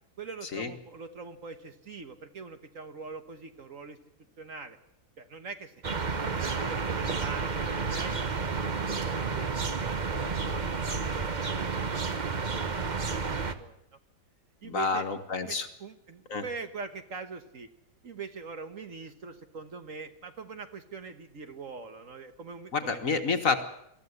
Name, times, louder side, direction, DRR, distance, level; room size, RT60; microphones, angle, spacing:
voice 1, 0.2-4.0 4.4-4.8 5.2-5.7 6.2-8.2 8.7-12.1 12.3-12.5 12.9-13.8 14.6-15.1 15.4-17.7 18.0-23.0, right 4 dB, 50° right, 8 dB, 1.5 m, -43 dB
sound 1, 5.8-13.5, right 4 dB, 30° right, 0.9 m, -31 dB
voice 2, 14.6-15.7 16.3-16.4 22.7-23.7, left 4 dB, 50° left, 7 dB, 1.8 m, -29 dB
22.5 x 14.5 x 9.7 m, 0.78 s
omnidirectional pair, 1.9 m